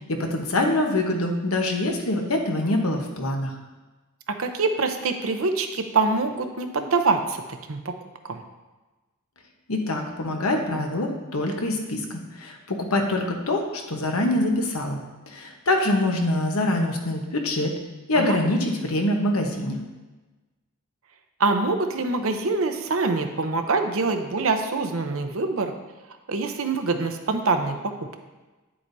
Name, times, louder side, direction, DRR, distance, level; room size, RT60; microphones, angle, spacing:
voice 1, 0.1-3.5 9.7-15.0 15.3-17.8 18.1-19.8, left 1 dB, 80° left, 3 dB, 1.1 m, -24 dB
voice 2, 4.4-7.9 8.3-8.4 18.1-18.4 21.4-25.7 26.3-28.1, right 3 dB, 70° right, 6 dB, 0.8 m, -25 dB
9.8 x 7.7 x 2.7 m, 1.2 s
head